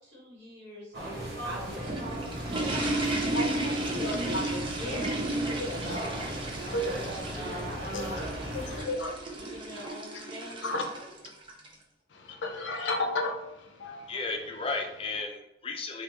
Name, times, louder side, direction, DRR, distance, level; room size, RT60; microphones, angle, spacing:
voice 1, 0.1-0.9 1.4-2.5 3.6-6.4 6.8-8.1 8.4-8.9 9.4-10.8, left 1 dB, 85° right, -5 dB, 1.4 m, -42 dB
sound 1, 0.9-8.8, right 1 dB, 60° right, 1.0 m, -37 dB
sound 2, 1.6-11.7, right 2 dB, 30° right, 0.5 m, -34 dB
voice 2, 3.3-4.5 5.6-5.7 6.7-7.1 7.9-8.2 8.5-9.6 10.6-10.8 12.1-14.1, left 2 dB, 85° left, 3 dB, 0.5 m, -34 dB
voice 3, 14.1-16.0, left 3 dB, 30° left, 3 dB, 0.4 m, -34 dB
3.4 x 2.4 x 2.8 m, 0.89 s
head